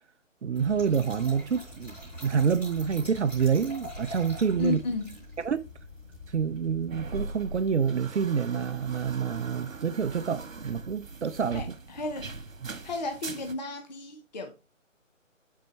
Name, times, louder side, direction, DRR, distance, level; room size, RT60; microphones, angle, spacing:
voice 1, 0.4-1.9 2.2-4.8 5.4-5.6 6.3-11.6 12.6-12.7, right 7 dB, 60° right, 0.6 m, -27 dB
Trickle dribble / Fill (with liquid), 0.5-7.3, left 2 dB, 5° left, 4.0 m, -45 dB
sound 1, 0.6-13.5, right 3 dB, 75° right, 1.4 m, -43 dB
voice 2, 4.6-5.1 11.5-12.3 12.7-14.5, left 2 dB, 35° left, 0.8 m, -33 dB
8.5 x 4.5 x 3.2 m
figure-of-eight pair, 160°, 40 cm